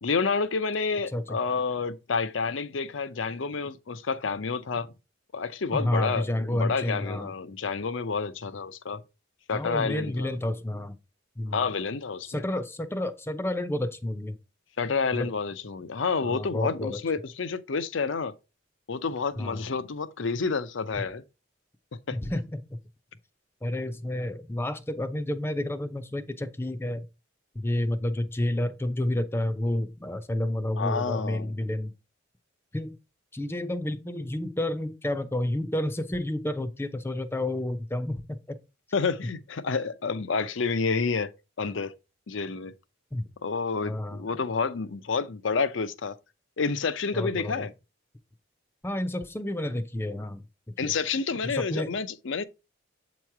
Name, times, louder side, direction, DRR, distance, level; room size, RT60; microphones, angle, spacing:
voice 1, 0.0-4.9 5.3-9.0 9.5-10.4 11.5-12.4 14.8-18.3 18.9-21.2 22.1-22.2 30.8-31.5 38.9-41.3 41.6-41.9 42.3-42.7 43.4-46.1 46.6-47.7 50.8-52.4, left 4 dB, 70° left, 0.6 m, -29 dB
voice 2, 5.7-7.3 9.5-11.0 11.4-11.7 12.3-14.4 15.1-15.3 16.2-17.0 19.4-19.6 22.1-22.6 23.6-27.1 27.5-31.9 32.7-33.0 33.3-38.4 43.1-43.3 43.8-44.2 47.1-47.7 48.8-50.4 50.8-50.9 51.5-51.9, left 1 dB, 10° left, 0.6 m, -30 dB
8.0 x 3.0 x 4.7 m
head